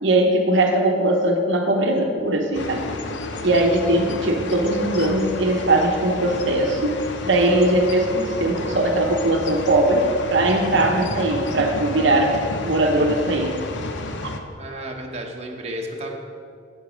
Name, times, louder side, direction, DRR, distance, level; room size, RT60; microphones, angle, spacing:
voice 1, 0.0-2.9 3.4-13.6, right 1 dB, 65° right, 3 dB, 0.8 m, -20 dB
sound 1, 2.5-14.4, left 2 dB, 60° left, 0.7 m, -31 dB
voice 2, 14.6-16.1, right 1 dB, 30° right, 0 dB, 1.0 m, -32 dB
8.1 x 8.0 x 5.1 m, 2.3 s
head